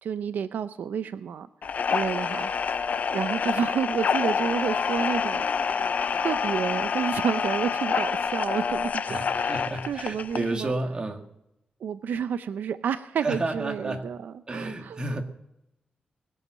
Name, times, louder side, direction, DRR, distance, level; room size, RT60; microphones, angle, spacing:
voice 1, 0.0-1.5 1.9-2.5 3.1-9.6 9.9-10.7 11.8-15.0, right 7 dB, 90° right, 12 dB, 0.6 m, -30 dB
sound 1, 1.6-10.6, left 6 dB, 55° left, 0.4 m, -27 dB
voice 2, 9.1-11.3 13.2-14.1 14.5-15.2, right 2 dB, 30° right, 4 dB, 1.8 m, -31 dB
20.5 x 7.8 x 7.4 m, 0.86 s
wide cardioid pair, 130°, 3 cm